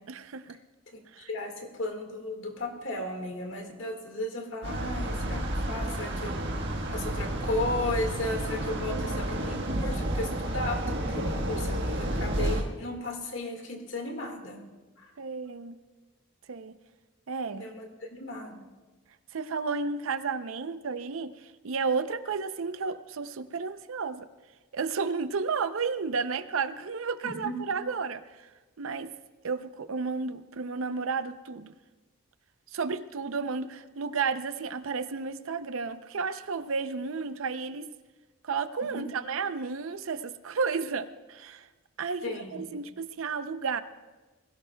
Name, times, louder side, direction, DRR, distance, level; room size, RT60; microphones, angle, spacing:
voice 1, 0.1-0.6 1.1-1.3 6.2-6.3 8.8-9.2 9.6-9.8 15.2-15.8 16.5-16.8 17.3-17.7 19.3-24.3 24.7-28.5 28.8-29.1 29.4-31.7 32.7-37.9 38.4-41.7 42.0-43.8, right 5 dB, 70° right, 12 dB, 0.6 m, -32 dB
voice 2, 1.3-14.6 15.0-15.1 17.5-18.6 27.2-27.6 38.8-39.1 42.2-42.6, left 2 dB, 60° left, 3 dB, 1.8 m, -35 dB
sound 1, 4.6-12.6, right 1 dB, 55° right, 1.4 m, -31 dB
21.5 x 16.5 x 2.3 m, 1.3 s
head